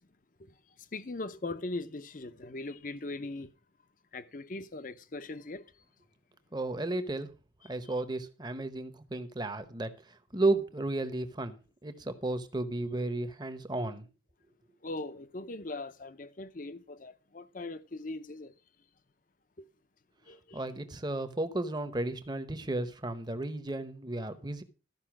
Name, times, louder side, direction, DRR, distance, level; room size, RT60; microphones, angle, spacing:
voice 1, 0.9-3.5 4.1-5.6 14.8-18.5 19.6-19.7 20.3-20.6, left 2 dB, 45° left, 0.7 m, -40 dB
voice 2, 6.5-7.3 7.6-11.6 11.8-14.0 20.5-24.6, right 2 dB, 20° right, 0.9 m, -33 dB
13.5 x 5.5 x 6.0 m
head